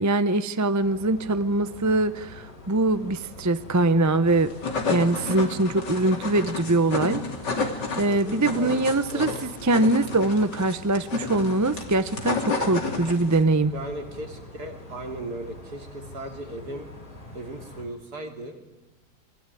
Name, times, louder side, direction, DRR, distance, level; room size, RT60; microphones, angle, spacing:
voice 1, 0.0-4.5 4.9-7.2 8.0-13.7, right 2 dB, 15° right, 12 dB, 0.6 m, -23 dB
sound 1, 0.8-17.8, left 1 dB, 70° left, 5.9 m, -44 dB
sound 2, 4.3-13.4, left 4 dB, 85° left, 3.7 m, -31 dB
voice 2, 8.1-8.8 9.1-9.4 13.7-16.9 17.3-18.6, right 1 dB, 65° right, 4 dB, 3.4 m, -37 dB
28.0 x 22.0 x 9.2 m, 1.1 s
omnidirectional pair, 1.8 m